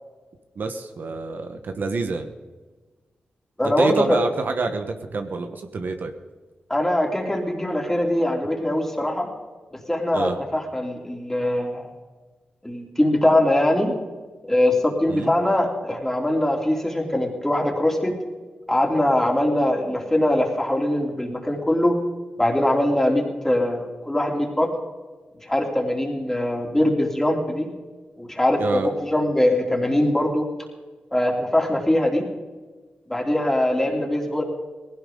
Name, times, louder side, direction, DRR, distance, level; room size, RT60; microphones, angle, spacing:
voice 1, 0.6-2.3 3.6-6.1 10.1-10.3 15.1-15.3 28.6-28.9, right 3 dB, 65° right, 6 dB, 1.3 m, -27 dB
voice 2, 3.6-4.2 6.7-9.3 9.9-11.9 12.6-13.9 14.4-18.1 18.7-22.0 22.4-24.7 25.4-27.7 28.2-30.4 31.1-32.3 33.1-34.4, left 1 dB, 10° left, 0 dB, 3.4 m, -22 dB
19.0 x 16.5 x 3.9 m, 1.3 s
cardioid pair, 80°, 4 cm